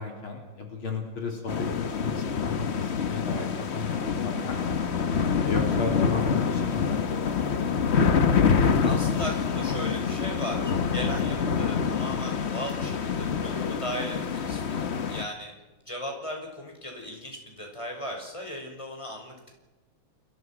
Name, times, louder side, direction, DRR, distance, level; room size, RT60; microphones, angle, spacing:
voice 1, 0.0-3.5 3.7-4.8 5.4-7.5, left 4 dB, 80° left, 2 dB, 4.1 m, -34 dB
sound 1, 1.5-15.2, left 6 dB, 40° left, 1.1 m, -26 dB
voice 2, 8.8-15.5 15.9-19.5, equal, 15° left, 2 dB, 6.0 m, -37 dB
30.0 x 22.0 x 6.1 m, 1.1 s
omnidirectional pair, 2.3 m